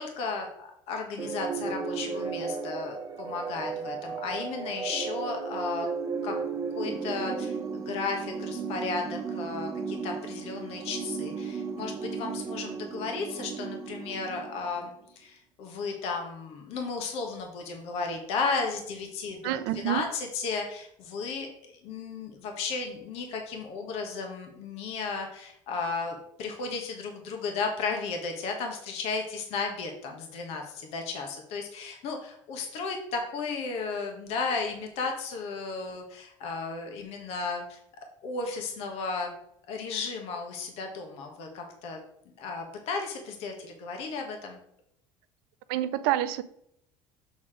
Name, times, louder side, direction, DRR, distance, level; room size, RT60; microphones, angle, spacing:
voice 1, 0.0-5.9 6.2-6.3 6.7-37.8 38.2-39.3 39.7-42.0 42.4-44.6, left 4 dB, 70° left, 3 dB, 1.4 m, -34 dB
sound 1, 1.2-14.9, right 5 dB, 30° right, 0.9 m, -35 dB
voice 2, 19.4-20.1 45.7-46.4, right 13 dB, 85° right, 13 dB, 0.5 m, -27 dB
7.1 x 4.1 x 4.9 m, 0.73 s
supercardioid pair, 95°, 11 cm